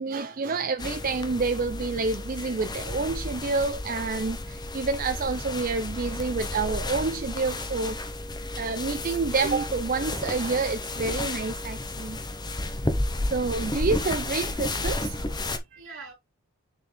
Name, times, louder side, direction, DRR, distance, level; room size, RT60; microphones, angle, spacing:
voice 1, 0.0-8.0 8.6-12.2 13.3-15.2 15.7-16.1, right 3 dB, 40° right, 0.4 m, -28 dB
sound 1, 0.8-15.6, left 2 dB, 20° left, 0.9 m, -32 dB
voice 2, 12.5-12.9 15.0-16.1, right 3 dB, 65° right, 2.6 m, -48 dB
6.7 x 4.5 x 3.3 m
head